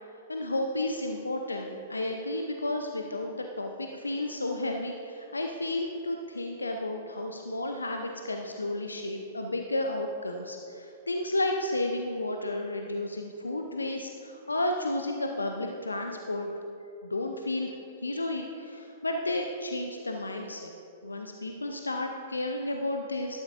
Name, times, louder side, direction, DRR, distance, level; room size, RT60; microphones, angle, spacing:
voice 1, 0.3-16.5 17.0-17.7 18.0-20.7 21.0-23.4, left 1 dB, 80° left, 3 dB, 0.6 m, -32 dB
12.5 x 12.0 x 2.6 m, 2.7 s
figure-of-eight pair, 105°, 0 cm